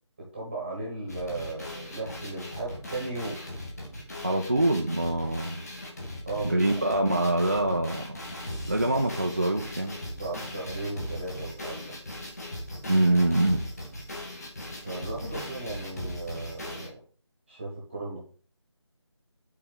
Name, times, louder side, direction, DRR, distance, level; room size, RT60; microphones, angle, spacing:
voice 1, 0.2-3.4 6.2-6.6 8.6-9.0 10.0-11.9 14.7-17.0 17.5-18.2, right 2 dB, 10° right, -5 dB, 1.3 m, -36 dB
sound 1, 1.1-16.9, left 1 dB, 35° left, 1.7 m, -38 dB
voice 2, 4.2-5.6 6.4-8.2 8.7-9.9 12.9-13.6, right 1 dB, 30° right, 0 dB, 0.5 m, -24 dB
5.7 x 4.2 x 5.9 m, 0.41 s
figure-of-eight pair, 175°, 15 cm